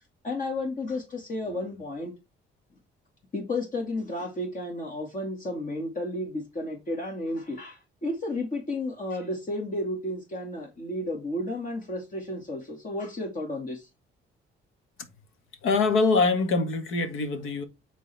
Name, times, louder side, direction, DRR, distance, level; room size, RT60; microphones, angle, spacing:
voice 1, 0.0-2.1 3.3-13.9, left 1 dB, 40° left, 2.3 m, -32 dB
voice 2, 15.6-17.6, left 3 dB, 90° left, 1.9 m, -24 dB
10.0 x 3.9 x 3.5 m
cardioid pair, 90°, 20 cm